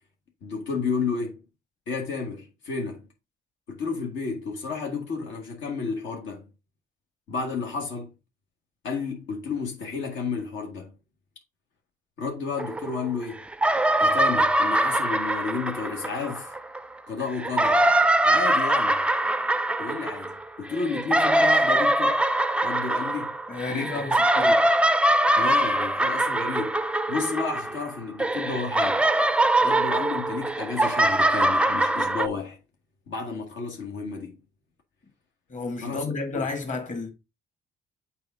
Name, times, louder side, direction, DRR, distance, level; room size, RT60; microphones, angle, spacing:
voice 1, 0.4-1.4 1.9-3.1 3.7-6.5 7.3-8.1 8.8-10.9 12.2-13.4 14.0-16.5 17.1-17.8 18.2-19.1 19.8-22.2 22.6-23.4 23.7-24.6 25.4-26.8 27.1-29.0 29.6-32.6 33.1-34.4 35.8-36.0 36.3-36.4, left 5 dB, 75° left, 1.6 m, -32 dB
sound 1, 12.6-13.2 13.5-16.8 17.3-27.9 28.2-32.3, right 1 dB, 5° right, 0.4 m, -23 dB
voice 2, 23.5-24.5 35.5-37.1, left 3 dB, 40° left, 2.2 m, -31 dB
6.8 x 4.5 x 3.7 m
cardioid pair, 90°, 20 cm